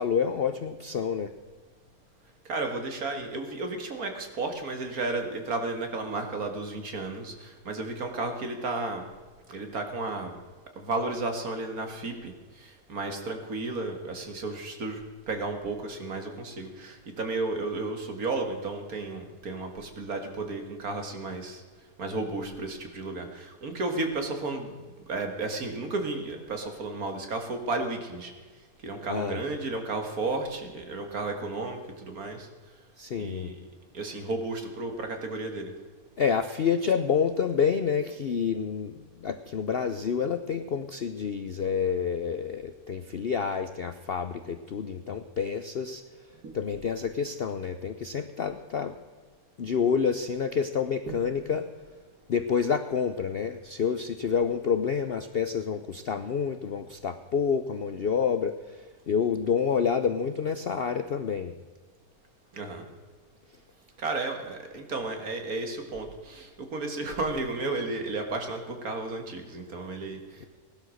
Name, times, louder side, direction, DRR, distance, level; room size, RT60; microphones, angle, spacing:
voice 1, 0.0-1.3 29.1-29.4 33.0-33.5 36.2-46.0 46.5-48.9 49.6-51.7 52.3-61.5, left 6 dB, 60° left, 9 dB, 0.6 m, -28 dB
voice 2, 2.5-9.0 9.5-10.4 10.8-15.0 15.3-21.6 22.0-24.7 25.1-28.3 28.8-32.5 33.2-33.6 33.9-35.7 46.4-46.6 51.1-51.2 62.5-62.8 64.0-70.5, right 3 dB, 60° right, 5 dB, 2.3 m, -33 dB
17.0 x 11.5 x 6.5 m, 1.5 s
omnidirectional pair, 1.8 m